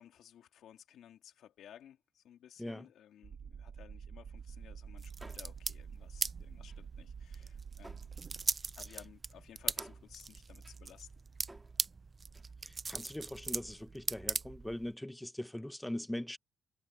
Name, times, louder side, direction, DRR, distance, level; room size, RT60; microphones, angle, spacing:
voice 1, 0.0-8.0 8.8-11.1, left 10 dB, 75° left, 3.0 m, -57 dB
sound 1, 3.2-8.5, right 7 dB, 55° right, 1.8 m, -48 dB
sound 2, 4.4-4.7 4.9-5.9 6.1-8.4 8.7-12.5, right 1 dB, 10° right, 2.2 m, -59 dB
sound 3, 5.0-14.9, right 4 dB, 30° right, 0.5 m, -40 dB
voice 2, 12.6-16.4, left 1 dB, 5° left, 0.8 m, -41 dB
cardioid pair, 90°, 0 cm